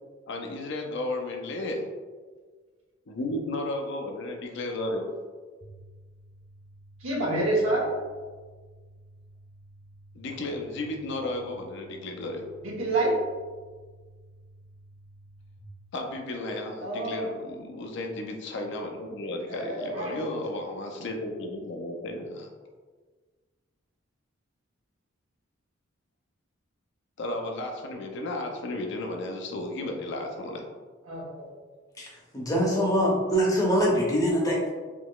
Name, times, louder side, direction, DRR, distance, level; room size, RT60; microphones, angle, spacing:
voice 1, 0.3-1.8 3.1-5.1 10.1-12.4 15.9-22.5 27.2-30.6, left 1 dB, 65° left, 2 dB, 0.5 m, -33 dB
sound 1, 5.6-15.6, right 1 dB, 30° right, 0.5 m, -53 dB
voice 2, 7.0-7.9 12.6-13.1 16.8-17.3 19.5-20.3 31.1-31.5, right 2 dB, 90° right, -3 dB, 1.0 m, -28 dB
voice 3, 32.3-34.6, equal, 15° left, -3 dB, 0.7 m, -23 dB
3.7 x 2.9 x 2.3 m, 1.5 s
head